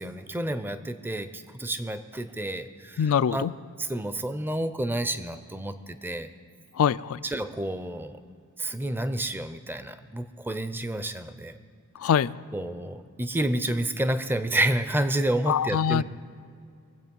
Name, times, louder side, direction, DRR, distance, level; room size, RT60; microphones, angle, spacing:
voice 1, 0.0-3.4 3.8-6.3 7.2-8.2 8.6-11.5 12.5-16.0, right 1 dB, 10° right, 11 dB, 0.5 m, -29 dB
voice 2, 3.0-3.5 6.8-7.2 12.0-12.4 15.5-16.0, left 8 dB, 65° left, 17 dB, 0.3 m, -23 dB
23.0 x 8.1 x 5.3 m, 2.4 s
head